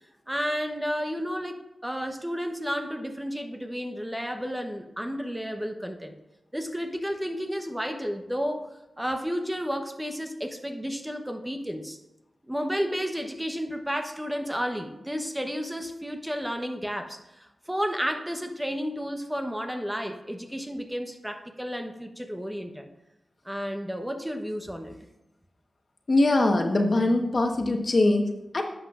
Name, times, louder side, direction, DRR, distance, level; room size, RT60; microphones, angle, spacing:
voice 1, 0.3-6.1 6.5-12.0 12.5-22.9 23.4-25.0, equal, 10° right, 6 dB, 0.9 m, -32 dB
voice 2, 26.1-28.6, left 2 dB, 55° left, 4 dB, 1.2 m, -22 dB
10.5 x 7.8 x 2.5 m, 0.91 s
cardioid pair, 40°, 0 cm